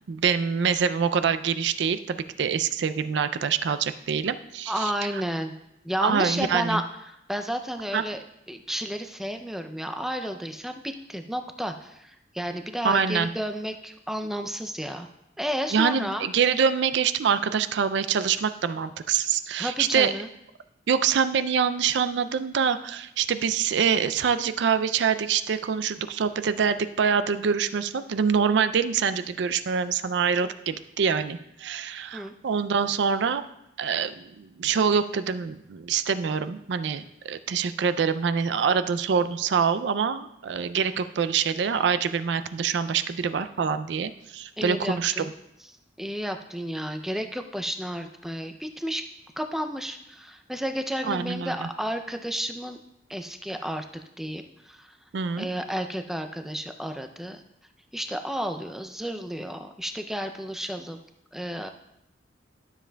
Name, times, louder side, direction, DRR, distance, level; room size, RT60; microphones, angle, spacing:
voice 1, 0.1-4.9 6.0-6.8 7.9-8.0 12.8-13.3 15.7-20.1 20.9-33.5 33.8-45.1 51.0-51.7 55.1-55.5, right 6 dB, 65° right, 12 dB, 0.4 m, -25 dB
voice 2, 4.7-5.5 5.8-15.1 15.4-16.3 19.6-20.3 32.1-32.3 44.6-45.3 46.0-49.1 49.4-52.8 53.1-55.0 55.4-57.4 57.9-61.0 61.3-61.7, equal, ahead, 6 dB, 0.4 m, -32 dB
12.5 x 7.2 x 2.3 m, 0.84 s
head